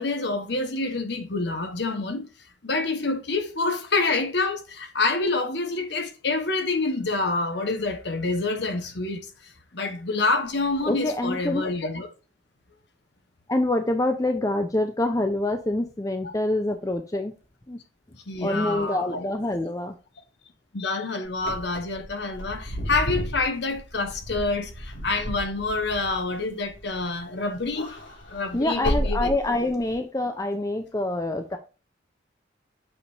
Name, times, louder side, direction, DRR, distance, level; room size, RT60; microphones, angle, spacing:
voice 1, 0.0-2.3 2.6-12.1 18.1-19.3 20.7-27.9 28.3-29.3, left 3 dB, 60° left, 1.2 m, -27 dB
voice 2, 10.9-11.6 13.5-17.3 17.7-17.8 18.4-19.9 28.5-31.6, left 1 dB, 15° left, 0.6 m, -26 dB
Wind / Car, 21.3-27.2 27.5-29.9, equal, 85° left, 3.7 m, -33 dB
8.3 x 5.0 x 2.6 m
head